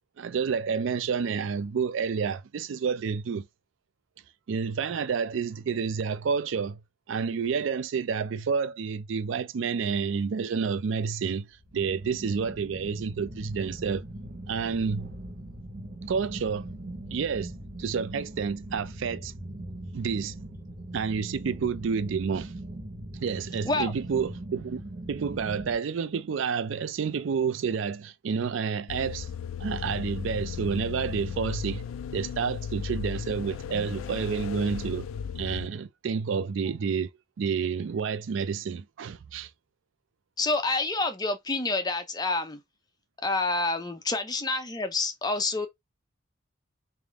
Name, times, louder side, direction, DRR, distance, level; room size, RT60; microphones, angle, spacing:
voice 1, 0.2-3.5 4.5-6.8 7.1-11.5 11.7-14.0 14.5-15.1 16.1-16.7 17.1-17.5 17.8-19.3 19.9-20.4 20.9-22.5 23.2-24.8 25.1-29.3 29.6-31.8 32.1-35.1 35.4-37.1 37.4-39.5, right 6 dB, 70° right, 0.4 m, -29 dB
sound 1, 11.5-25.8, right 1 dB, 50° right, 0.9 m, -41 dB
sound 2, 28.9-35.7, left 7 dB, 85° left, 0.3 m, -35 dB
voice 2, 40.4-42.6 43.2-45.7, left 3 dB, 20° left, 0.6 m, -28 dB
3.5 x 2.6 x 3.4 m
head